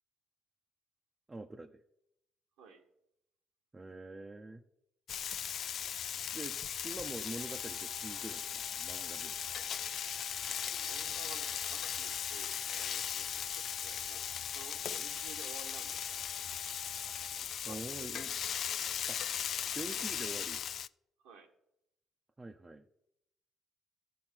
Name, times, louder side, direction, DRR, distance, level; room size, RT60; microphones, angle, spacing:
voice 1, 1.3-1.8 3.7-4.6 6.3-6.6 6.8-9.4 17.6-18.4 19.1-19.2 19.7-20.6 22.4-22.8, right 2 dB, 25° right, 3 dB, 0.7 m, -45 dB
Frying (food), 5.1-20.9, left 9 dB, 60° left, 0.3 m, -38 dB
sound 1, 7.4-17.4, right 5 dB, 65° right, 0.8 m, -57 dB
voice 2, 10.5-16.2 17.6-18.2 21.2-21.5, right 5 dB, 85° right, 1 dB, 1.3 m, -54 dB
13.0 x 4.5 x 7.5 m, 0.81 s
supercardioid pair, 60°, 0 cm